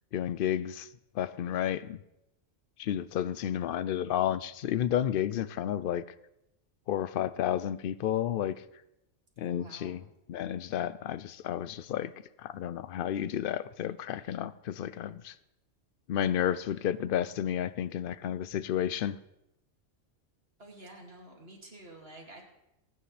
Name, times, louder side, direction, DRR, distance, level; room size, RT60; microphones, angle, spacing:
voice 1, 0.1-0.9 1.1-2.0 2.8-6.0 6.9-8.6 9.4-10.0 10.3-12.1 12.4-15.3 16.1-19.2, left 10 dB, 60° left, 15 dB, 0.6 m, -31 dB
voice 2, 9.5-10.0 20.6-22.4, right 1 dB, 55° right, 0 dB, 2.6 m, -50 dB
20.5 x 9.5 x 3.3 m, 0.86 s
omnidirectional pair, 1.3 m